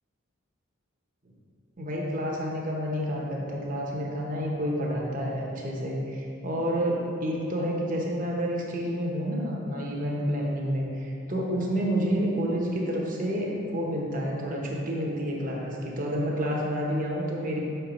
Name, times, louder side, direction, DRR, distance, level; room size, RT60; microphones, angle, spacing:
voice 1, 1.8-17.6, equal, 35° right, -2 dB, 1.0 m, -29 dB
6.5 x 4.6 x 5.2 m, 2.7 s
head